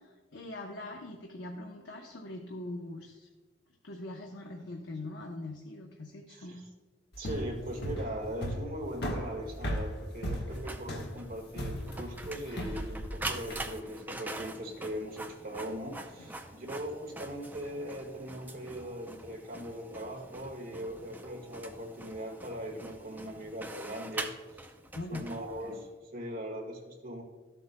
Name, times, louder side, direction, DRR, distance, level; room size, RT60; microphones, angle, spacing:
voice 1, 0.3-3.3 3.8-6.6 24.9-25.2, left 2 dB, 90° left, 1 dB, 0.8 m, -42 dB
voice 2, 6.3-6.7 7.2-24.7 25.1-27.2, equal, 55° right, 1 dB, 1.7 m, -40 dB
sound 1, 7.1-13.7, equal, 65° left, 1.3 m, -36 dB
Printer, 10.5-25.9, right 2 dB, 10° right, 0.5 m, -44 dB
13.5 x 7.7 x 2.2 m, 1.3 s
head